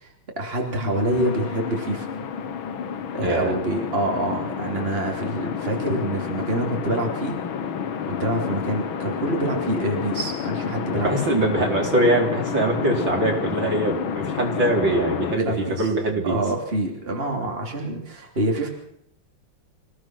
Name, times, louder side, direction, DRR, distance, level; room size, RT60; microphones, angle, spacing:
voice 1, 0.0-2.1 3.1-7.4 8.1-11.1 15.4-15.9 16.2-18.7, right 1 dB, 25° right, 1 dB, 3.4 m, -26 dB
sound 1, 0.7-15.4, left 7 dB, 75° left, 2.1 m, -29 dB
voice 2, 3.2-3.5 10.9-16.4, right 2 dB, 60° right, 0 dB, 5.0 m, -23 dB
27.0 x 17.0 x 6.2 m, 0.75 s
omnidirectional pair, 2.3 m